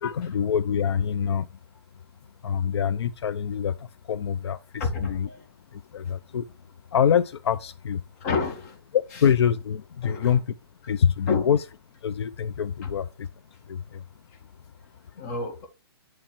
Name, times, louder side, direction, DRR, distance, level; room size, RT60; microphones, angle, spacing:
voice 1, 0.0-1.5 2.4-5.3 5.7-6.5 6.9-8.0 8.9-10.5 10.9-11.6 12.0-13.3 13.7-14.0, left 8 dB, 85° left, 0.4 m, -25 dB
voice 2, 4.8-5.4 8.2-8.8 10.0-10.4 11.3-11.5 12.8-12.9 15.2-15.7, left 4 dB, 40° left, 1.3 m, -29 dB
8.4 x 3.1 x 4.2 m
hypercardioid pair, 145°, 14 cm